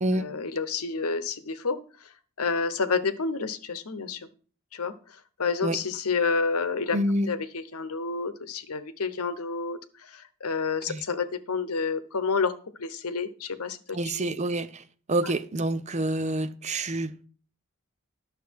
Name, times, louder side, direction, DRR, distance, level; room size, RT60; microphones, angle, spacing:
voice 1, 0.1-1.8 2.4-4.3 4.7-4.9 5.4-7.0 7.3-12.5 12.8-14.3, left 4 dB, 90° left, 0.9 m, -29 dB
voice 2, 6.9-7.3 10.9-11.0 13.9-14.8 15.1-17.3, right 1 dB, 30° right, 0.6 m, -27 dB
11.5 x 6.7 x 4.6 m
head